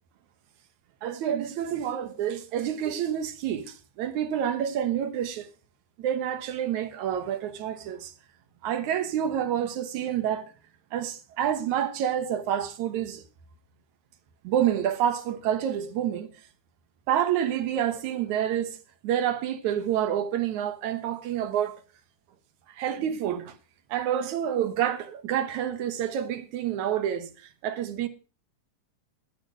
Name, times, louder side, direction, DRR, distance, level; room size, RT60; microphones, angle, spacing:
voice 1, 1.0-5.5 6.0-8.1 8.6-10.5 10.9-13.2 14.4-16.3 17.1-18.8 19.0-21.8 22.8-23.5 23.9-28.1, right 10 dB, 75° right, 2.6 m, -28 dB
11.0 x 11.0 x 5.0 m
omnidirectional pair, 3.5 m